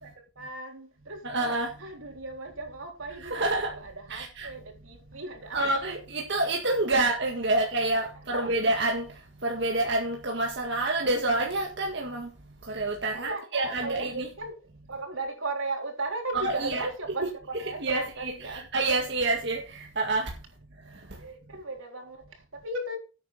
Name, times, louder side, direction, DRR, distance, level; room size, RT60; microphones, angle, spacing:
voice 1, 0.0-5.6 7.5-7.8 8.3-8.5 13.1-18.7 21.1-23.0, right 2 dB, 80° right, 3.7 m, -37 dB
voice 2, 1.2-1.7 3.2-3.7 4.1-4.5 5.5-9.1 9.4-12.3 12.7-14.3 16.4-16.9 17.8-20.3, right 2 dB, 60° right, 1.9 m, -28 dB
11.0 x 8.8 x 4.3 m
head